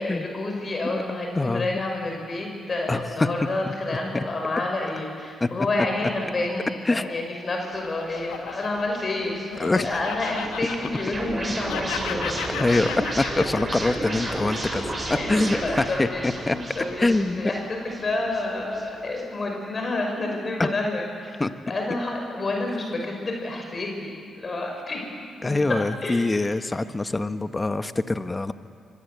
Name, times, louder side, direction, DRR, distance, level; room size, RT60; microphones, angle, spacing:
voice 1, 0.0-12.4 12.7-12.8 13.2-13.3 15.2-21.3 21.7-25.0 25.4-25.5 26.0-26.3, left 2 dB, 45° left, 1 dB, 5.8 m, -29 dB
voice 2, 1.3-1.7 2.9-3.3 4.1-4.2 5.4-5.5 6.0-6.1 6.8-7.1 9.6-10.0 12.6-14.8 15.1-16.6 17.0-17.5 20.6-20.7 21.4-22.0 25.4-28.5, left 2 dB, 25° left, 11 dB, 1.1 m, -24 dB
Laughter, 7.2-11.4 11.7-16.1, left 9 dB, 85° left, 1.1 m, -36 dB
sound 1, 7.7-19.2, right 1 dB, 35° right, 7.7 m, -33 dB
25.0 x 17.5 x 8.2 m, 2.2 s
hypercardioid pair, 45°, 0 cm